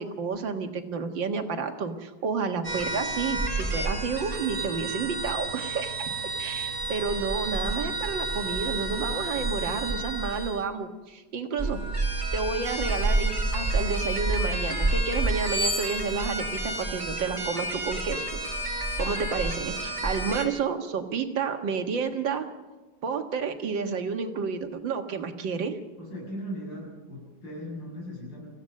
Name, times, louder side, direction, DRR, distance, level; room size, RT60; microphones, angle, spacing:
voice 1, 0.0-6.1 6.4-11.8 12.3-18.4 19.0-22.5 23.0-25.8, right 5 dB, 80° right, 6 dB, 2.3 m, -30 dB
sound 1, 2.6-10.6 11.6-20.5, right 2 dB, 15° right, 2.3 m, -30 dB
sound 2, 12.6-14.2 15.3-17.4 17.9-18.1, left 1 dB, 30° left, 2.6 m, -36 dB
voice 2, 26.0-28.5, equal, 85° left, -1 dB, 7.6 m, -38 dB
26.5 x 15.5 x 6.5 m, 1.2 s
omnidirectional pair, 2.0 m